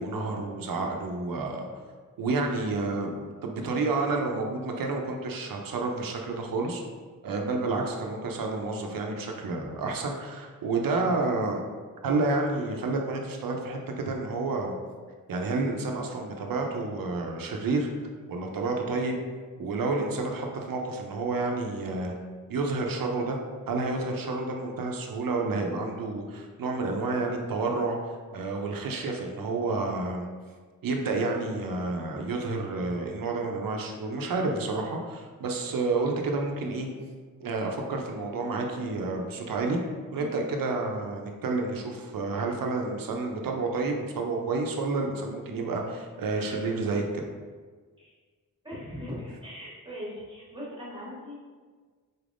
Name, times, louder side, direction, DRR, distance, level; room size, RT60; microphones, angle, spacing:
voice 1, 0.0-1.7 2.2-6.8 7.2-11.6 12.0-14.8 15.3-17.9 18.3-19.2 19.6-22.1 22.5-23.4 23.7-28.0 28.3-30.3 30.8-36.9 37.4-39.8 40.1-47.2, right 3 dB, 70° right, 2 dB, 0.6 m, -30 dB
voice 2, 40.1-40.4 48.0-48.1 48.6-51.4, left 1 dB, 15° right, -7 dB, 1.2 m, -40 dB
4.2 x 3.4 x 2.5 m, 1.5 s
wide cardioid pair, 140°, 35 cm